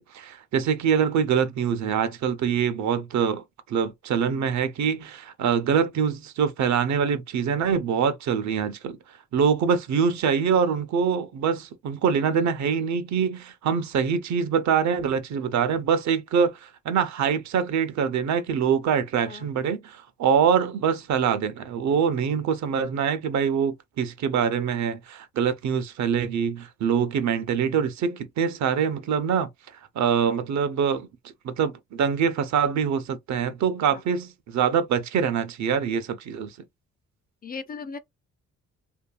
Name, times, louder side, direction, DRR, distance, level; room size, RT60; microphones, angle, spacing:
voice 1, 0.0-9.0 9.3-29.5 29.9-31.1 31.4-36.6, right 7 dB, 65° right, 0.7 m, -24 dB
voice 2, 37.4-38.0, left 5 dB, 30° left, 0.4 m, -37 dB
2.7 x 2.6 x 2.3 m
cardioid pair, 90°, 30 cm